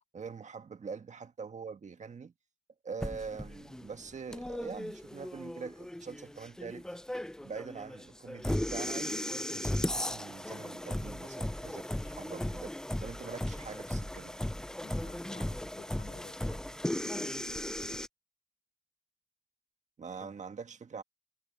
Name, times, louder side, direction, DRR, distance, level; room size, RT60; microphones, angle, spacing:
voice 1, 0.1-2.3 2.8-6.8 7.4-9.2 9.5-12.7 13.0-14.4 20.0-21.0, right 5 dB, 35° right, 1.6 m, -44 dB
sound 1, 3.0-18.1, left 1 dB, 5° left, 0.4 m, -37 dB
voice 2, 14.8-16.8 20.2-20.3, left 6 dB, 35° left, 0.9 m, -53 dB
cardioid pair, 90°, 20 cm